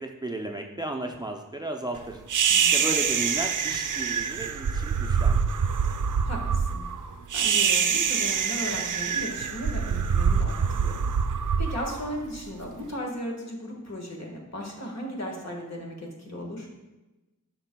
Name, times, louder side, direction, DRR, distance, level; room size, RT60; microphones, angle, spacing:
voice 1, 0.0-2.2 2.7-5.5, right 1 dB, 15° right, 3 dB, 0.5 m, -34 dB
sound 1, 2.3-12.7, right 6 dB, 70° right, 0.5 m, -25 dB
voice 2, 2.5-2.9 6.2-6.8 7.3-11.0 11.6-16.7, equal, 55° left, 0 dB, 1.5 m, -36 dB
9.8 x 6.0 x 2.2 m, 1.1 s
wide cardioid pair, 75°, 32 cm